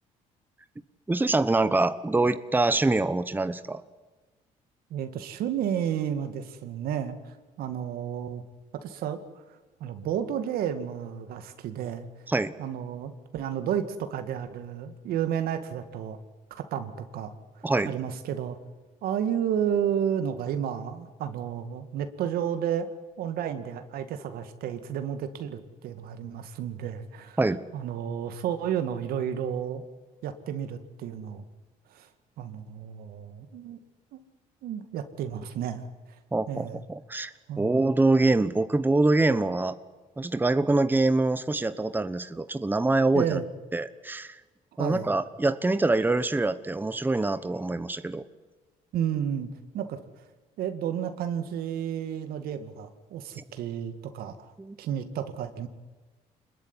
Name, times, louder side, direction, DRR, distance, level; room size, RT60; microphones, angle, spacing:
voice 1, 1.1-3.8 12.3-12.5 17.6-17.9 27.4-27.6 36.3-37.3 37.6-39.8 40.2-43.4 43.7-44.4 44.8-48.2 53.4-53.5 54.6-54.8, right 2 dB, 10° right, 13 dB, 1.1 m, -25 dB
voice 2, 4.9-8.4 8.7-9.2 9.5-12.1 12.6-16.2 16.5-18.6 19.0-22.9 23.2-27.4 27.7-29.8 30.2-31.4 31.9-32.1 32.4-33.8 34.1-34.2 34.6-35.9 36.5-36.8 37.5-37.8 43.1-43.4 44.8-45.1 48.9-50.0 50.6-54.5 54.8-55.7, right 9 dB, 80° right, 9 dB, 2.1 m, -32 dB
26.0 x 21.0 x 10.0 m, 1.3 s
cardioid pair, 90°, 15 cm